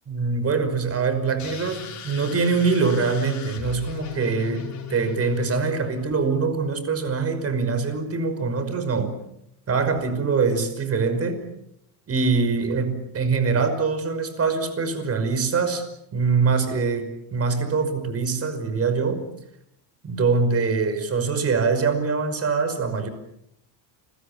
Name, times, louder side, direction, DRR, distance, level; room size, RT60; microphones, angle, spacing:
voice 1, 0.1-9.2 9.7-11.4 12.1-15.8 16.1-19.2 20.0-23.1, right 4 dB, 30° right, 10 dB, 5.5 m, -23 dB
sound 1, 1.4-6.2, left 7 dB, 35° left, 5.1 m, -37 dB
29.5 x 22.5 x 7.3 m, 0.80 s
cardioid pair, 135°, 49 cm